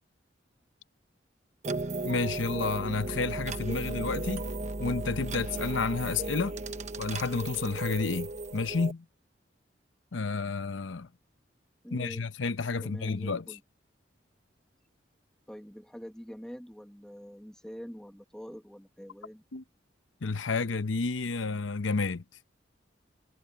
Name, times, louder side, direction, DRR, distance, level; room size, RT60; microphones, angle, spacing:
sound 1, 1.6-8.9, right 2 dB, 40° right, 0.9 m, -35 dB
voice 1, 2.0-4.4 4.8-6.6 7.0-9.0 10.1-11.1 11.9-13.4 19.5-19.6 20.2-22.2, left 4 dB, 90° left, 0.8 m, -30 dB
voice 2, 11.8-12.3 12.8-13.6 15.5-19.4, equal, 5° left, 1.6 m, -45 dB
head